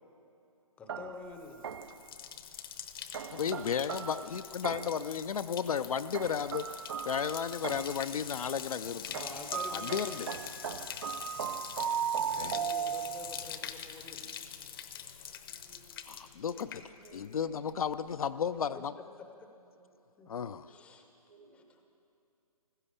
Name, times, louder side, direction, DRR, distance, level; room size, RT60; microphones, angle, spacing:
voice 1, 0.8-1.7 9.1-10.4 12.2-14.3 17.2-17.3 20.2-20.3 20.7-21.0 21.5-21.8, left 4 dB, 5° left, 4 dB, 0.7 m, -48 dB
sound 1, 0.9-2.1 3.1-5.1 6.1-8.1 9.1-13.4, right 8 dB, 40° right, 0.4 m, -37 dB
Bathtub (filling or washing), 1.3-17.4 17.7-18.2, left 8 dB, 35° left, 0.8 m, -44 dB
voice 2, 3.3-6.7 7.0-9.2 9.7-10.3 12.4-12.5 16.1-16.8 17.1-19.0 20.3-20.7, left 7 dB, 65° left, 12 dB, 0.5 m, -34 dB
voice 3, 13.2-13.7 15.2-16.2 17.0-17.6 19.6-19.9 20.4-21.0 21.3-21.8, right 3 dB, 75° right, 2 dB, 2.8 m, -62 dB
15.5 x 13.0 x 7.0 m, 2.6 s
hypercardioid pair, 155°, 20 cm